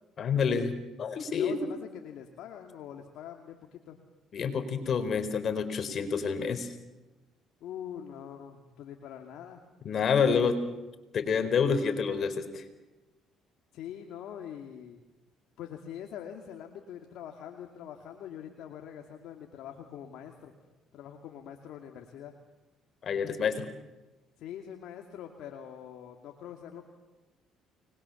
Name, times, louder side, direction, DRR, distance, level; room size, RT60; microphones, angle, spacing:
voice 1, 0.2-1.6 4.3-6.7 9.8-10.6 11.1-12.6 23.0-23.7, left 6 dB, 50° left, 9 dB, 4.3 m, -28 dB
voice 2, 1.3-4.0 7.6-9.6 13.7-15.0 15.6-20.5 20.9-22.3 24.4-26.8, left 9 dB, 70° left, 3 dB, 2.5 m, -44 dB
30.0 x 21.5 x 7.2 m, 1.1 s
supercardioid pair, 70°, 0 cm